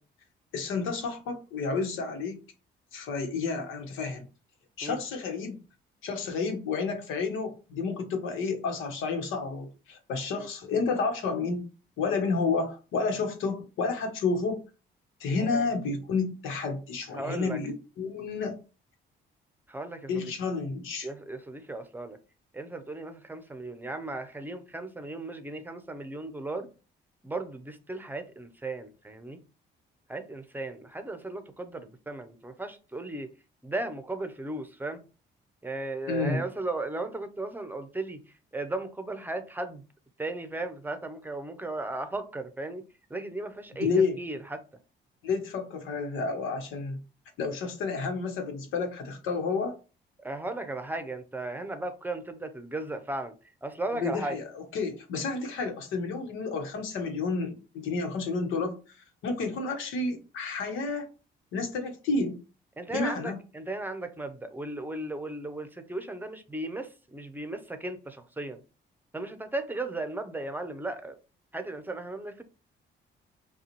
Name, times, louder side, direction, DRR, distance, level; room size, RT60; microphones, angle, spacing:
voice 1, 0.5-2.4 2.9-4.2 4.8-5.6 6.0-11.6 12.0-14.6 15.2-18.6 20.1-21.1 36.1-36.4 43.8-44.2 45.2-47.0 47.4-49.7 53.9-59.0 59.2-61.1 61.5-62.4 62.9-63.4, left 4 dB, 85° left, 5 dB, 1.1 m, -30 dB
voice 2, 17.1-17.6 19.7-20.3 21.0-22.2 22.5-26.7 27.2-29.4 30.1-33.3 33.6-35.0 35.6-38.2 38.5-39.8 40.2-42.8 43.1-43.9 44.2-44.6 50.2-53.3 53.6-54.3 62.8-68.6 69.1-71.2 71.5-72.4, right 2 dB, 10° right, 9 dB, 0.7 m, -36 dB
5.5 x 2.4 x 3.0 m, 0.33 s
cardioid pair, 90°, 20 cm